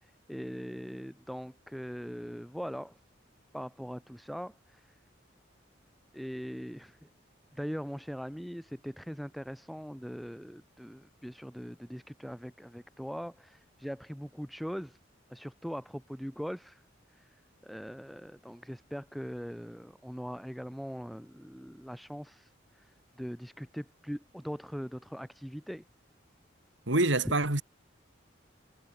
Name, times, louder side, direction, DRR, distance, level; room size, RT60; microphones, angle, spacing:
voice 1, 0.0-3.0 3.5-5.0 6.1-7.1 7.5-15.0 15.3-16.8 17.1-17.4 17.6-25.8, equal, ahead, 3.5 m, -41 dB
voice 2, 26.9-27.6, right 2 dB, 75° right, 3.4 m, -26 dB
head